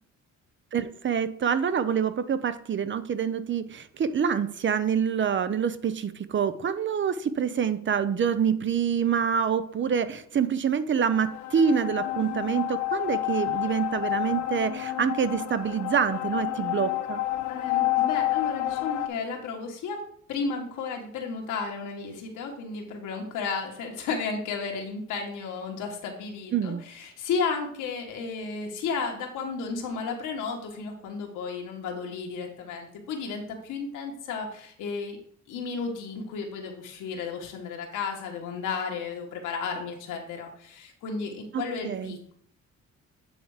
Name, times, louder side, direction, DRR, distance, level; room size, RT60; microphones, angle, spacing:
voice 1, 0.7-17.2 26.5-26.8 41.5-42.2, right 7 dB, 40° right, 12 dB, 0.6 m, -26 dB
sound 1, 11.0-19.1, left 15 dB, 70° left, 0.6 m, -29 dB
voice 2, 17.5-20.0 20.3-35.2 35.5-42.3, left 5 dB, 90° left, 1 dB, 1.7 m, -33 dB
8.8 x 3.4 x 4.9 m, 0.62 s
cardioid pair, 90°, 30 cm